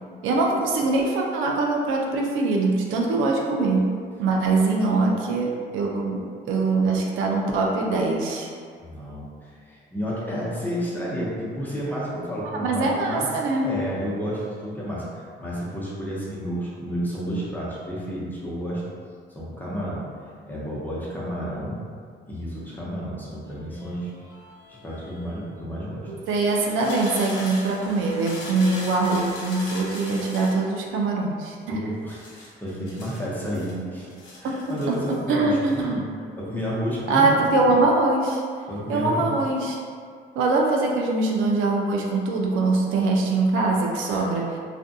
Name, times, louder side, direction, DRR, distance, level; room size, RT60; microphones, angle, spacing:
voice 1, 0.2-3.9 4.2-8.5 12.4-13.7 26.1-31.8 34.4-34.6 35.3-36.0 37.1-38.4 38.9-39.8 40.4-44.6, right 3 dB, 85° right, -1 dB, 0.4 m, -23 dB
voice 2, 8.8-13.3 13.6-18.8 19.3-20.1 20.4-21.8 22.3-24.1 24.7-26.1 31.7-34.1 34.4-36.0 36.4-37.3 37.6-37.7 38.7-39.3 44.1-44.2, equal, 10° left, -7 dB, 0.7 m, -31 dB
sound 1, 23.4-25.4 26.2-30.6 32.1-33.7 34.1-35.2 35.5-35.8, left 1 dB, 80° left, 0.8 m, -40 dB
2.4 x 2.2 x 2.6 m, 2.1 s
cardioid pair, 90°, 20 cm